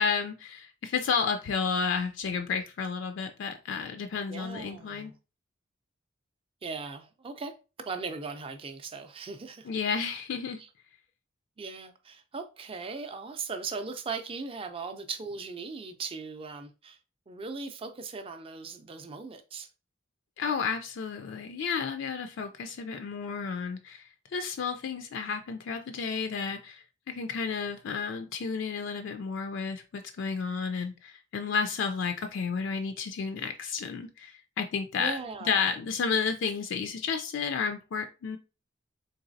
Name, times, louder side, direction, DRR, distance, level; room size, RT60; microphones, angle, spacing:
voice 1, 0.0-5.1 9.7-10.6 20.4-38.4, left 5 dB, 70° left, 0.4 m, -32 dB
voice 2, 4.3-5.2 6.6-7.5 7.9-9.7 10.6-10.7 11.6-17.0 17.3-19.7 35.0-35.6, right 4 dB, 30° right, 0.4 m, -38 dB
4.0 x 3.1 x 2.6 m
head